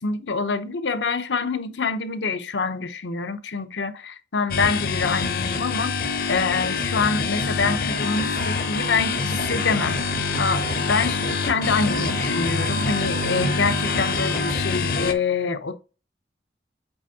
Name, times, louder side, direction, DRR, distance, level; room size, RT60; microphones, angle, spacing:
voice 1, 0.0-5.9 6.3-10.0 10.4-15.7, left 4 dB, 85° left, 0.8 m, -26 dB
sound 1, 4.5-15.1, left 4 dB, 50° left, 0.6 m, -25 dB
sound 2, 8.1-14.6, right 4 dB, 80° right, 0.6 m, -34 dB
8.0 x 4.3 x 2.8 m
head